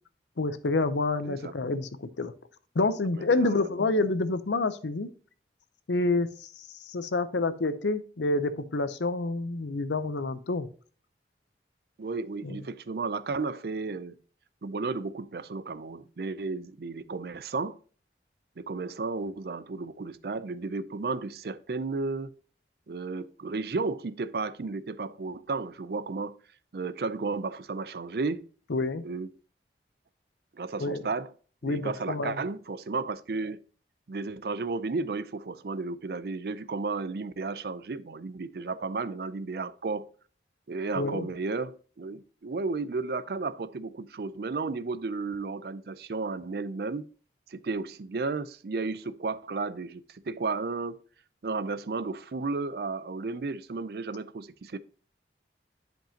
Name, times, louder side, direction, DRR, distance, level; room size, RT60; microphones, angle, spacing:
voice 1, 0.4-2.3 2.7-5.1 5.9-6.5 6.8-10.7 12.4-12.6 28.7-29.0 30.8-31.0 31.6-32.4 41.0-41.3, left 3 dB, 85° left, 0.7 m, -28 dB
voice 2, 3.1-3.6 12.0-14.2 14.6-17.8 18.6-22.3 22.9-26.4 26.7-28.4 29.0-29.3 30.6-31.3 31.6-33.6 34.1-40.1 40.7-47.1 47.5-51.0 51.4-54.8, right 3 dB, 60° right, 0.4 m, -33 dB
10.5 x 5.3 x 2.8 m
head